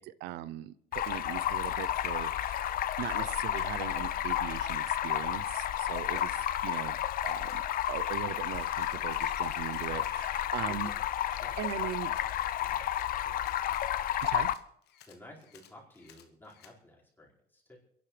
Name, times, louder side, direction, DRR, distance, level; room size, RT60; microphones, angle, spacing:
voice 1, 0.0-2.6 3.0-6.3 6.6-7.0 7.2-7.6 7.9-10.9 11.6-12.1 14.2-14.5, right 12 dB, 85° right, 16 dB, 0.6 m, -39 dB
Stream, 0.9-14.5, left 11 dB, 60° left, 0.6 m, -32 dB
Camera, 1.8-2.2 3.3-3.7 4.6-5.0 5.9-6.3 7.2-7.6 8.5-10.1 11.6-12.3 12.9-16.7, left 9 dB, 80° left, 1.4 m, -59 dB
voice 2, 11.4-11.9 12.6-13.5 15.1-17.8, left 1 dB, 10° left, -5 dB, 5.2 m, -53 dB
29.5 x 11.0 x 3.3 m, 0.74 s
cardioid pair, 110°, 17 cm